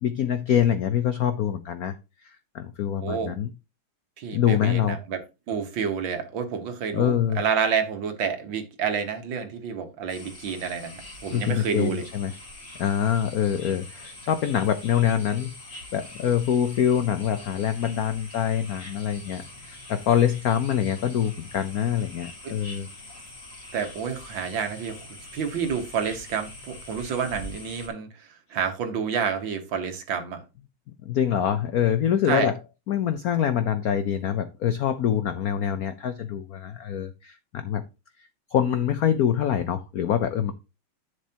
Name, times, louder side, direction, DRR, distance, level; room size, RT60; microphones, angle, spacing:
voice 1, 0.0-2.0 2.2-3.5 4.3-5.0 6.9-7.4 11.3-12.3 12.8-15.6 15.9-22.9 31.0-32.6 32.9-37.8 38.2-40.5, left 9 dB, 75° left, 0.8 m, -25 dB
voice 2, 3.0-3.3 4.2-5.2 5.5-12.0 23.7-25.1 25.3-30.4 32.3-32.5, right 7 dB, 65° right, 2.0 m, -29 dB
sound 1, 10.1-27.9, left 2 dB, 30° left, 2.8 m, -44 dB
10.5 x 6.5 x 2.9 m
omnidirectional pair, 2.3 m